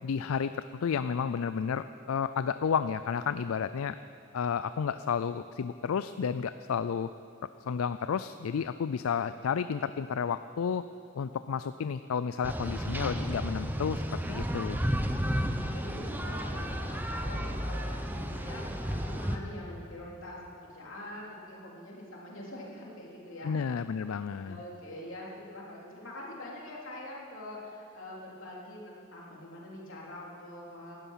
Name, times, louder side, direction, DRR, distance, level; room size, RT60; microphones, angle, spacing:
voice 1, 0.0-4.0 4.3-7.1 7.7-10.8 11.1-14.0 14.3-14.8 23.4-24.6, left 6 dB, 85° left, 12 dB, 0.4 m, -31 dB
sound 1, 12.4-19.4, equal, 10° right, 0.8 m, -32 dB
voice 2, 15.4-23.5 24.4-31.0, left 1 dB, 70° left, -4 dB, 3.7 m, -44 dB
19.0 x 12.5 x 5.7 m, 2.5 s
head